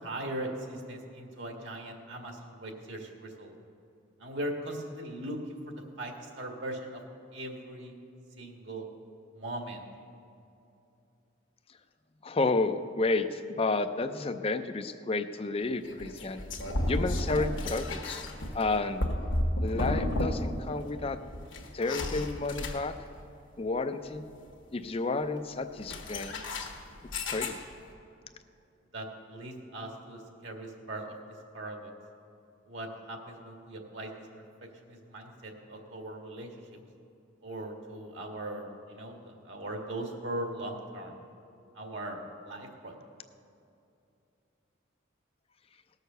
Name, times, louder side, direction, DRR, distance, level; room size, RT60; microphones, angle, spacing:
voice 1, 0.0-3.5 4.2-7.0 7.3-7.9 8.4-8.9 9.3-9.8 28.9-31.1 31.5-31.9 32.7-34.1 34.9-36.5 37.4-41.1 41.8-42.9, right 1 dB, 65° right, 2 dB, 1.8 m, -39 dB
voice 2, 12.2-16.4 16.9-18.2 18.5-19.0 19.6-21.2 21.7-22.9 23.6-24.3 24.7-26.4 27.3-27.6, left 3 dB, 30° left, 10 dB, 0.5 m, -31 dB
sound 1, 15.8-20.7 20.9-23.2 25.8-27.9, left 1 dB, 70° left, 1.4 m, -32 dB
18.0 x 6.5 x 6.7 m, 2.7 s
head